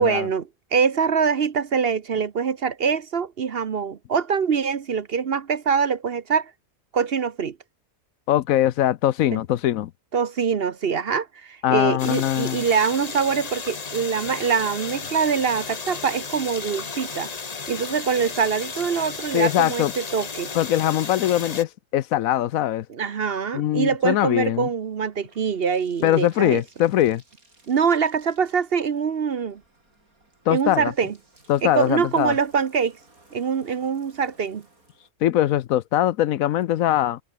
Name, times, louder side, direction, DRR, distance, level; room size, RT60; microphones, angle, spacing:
voice 1, 0.0-6.5 6.9-7.6 9.3-9.4 10.1-17.3 17.7-20.5 22.9-26.6 27.7-29.6 30.5-31.1 31.6-33.0 33.3-34.6, right 6 dB, 50° right, 1.0 m, -24 dB
voice 2, 8.3-9.9 11.6-12.6 19.3-19.9 20.5-22.9 23.5-24.7 26.0-27.2 30.5-30.9 31.5-32.3 35.2-37.2, left 12 dB, 75° left, 1.1 m, -21 dB
sound 1, 12.0-21.6, left 4 dB, 30° left, 1.1 m, -34 dB
Bathtub (filling or washing), 23.9-35.1, right 2 dB, 85° right, 6.9 m, -58 dB
omnidirectional pair, 1.5 m